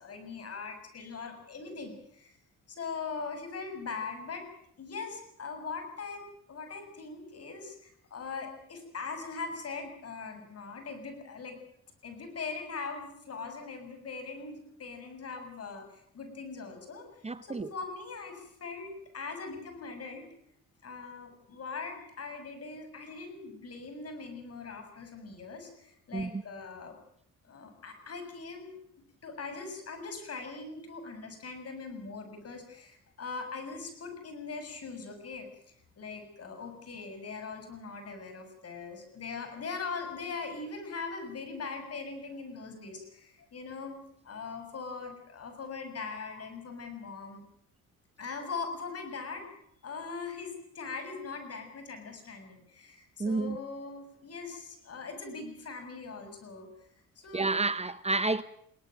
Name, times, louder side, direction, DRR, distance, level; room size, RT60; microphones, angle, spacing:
voice 1, 0.0-2.3 2.7-4.5 4.8-11.6 12.0-20.3 20.8-27.0 27.5-28.8 29.2-35.5 36.0-44.0 44.2-47.4 48.2-49.5 49.8-56.9 57.2-57.6, left 4 dB, 50° left, 6.9 m, -41 dB
voice 2, 17.2-17.7 26.1-26.3 53.2-53.6 57.3-58.4, right 3 dB, 20° right, 1.0 m, -29 dB
21.5 x 18.5 x 8.9 m
cardioid pair, 90°, 30 cm